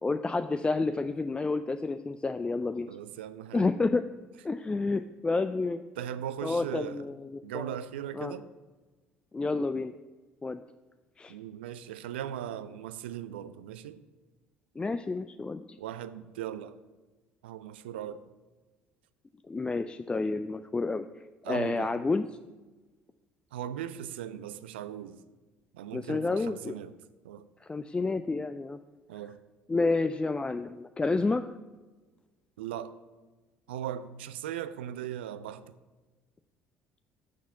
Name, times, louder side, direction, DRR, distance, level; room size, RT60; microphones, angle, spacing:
voice 1, 0.0-2.9 3.5-4.0 4.4-5.8 6.4-7.8 8.1-8.3 9.3-9.9 10.4-10.6 11.2-11.4 14.8-15.8 19.5-22.3 25.9-26.7 27.6-28.8 29.7-31.5, left 3 dB, 15° left, 0.3 m, -30 dB
voice 2, 2.9-3.7 6.0-7.0 7.4-8.5 11.3-14.0 15.8-16.8 17.4-18.2 21.4-22.0 23.5-25.2 25.7-26.9 27.2-27.4 29.1-29.4 32.6-32.9 33.7-35.6, right 10 dB, 70° right, 0.4 m, -38 dB
6.2 x 5.8 x 7.1 m
figure-of-eight pair, 55°, 6 cm